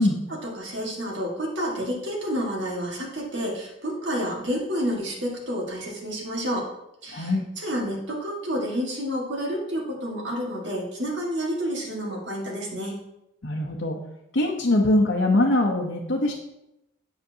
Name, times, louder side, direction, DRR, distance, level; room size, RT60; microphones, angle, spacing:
voice 1, 0.4-6.7 7.0-13.0, equal, 65° right, -2 dB, 1.8 m, -29 dB
voice 2, 7.1-7.5 13.4-14.0 14.3-16.3, left 1 dB, 65° left, -1 dB, 0.9 m, -22 dB
8.0 x 7.9 x 2.8 m, 0.85 s
head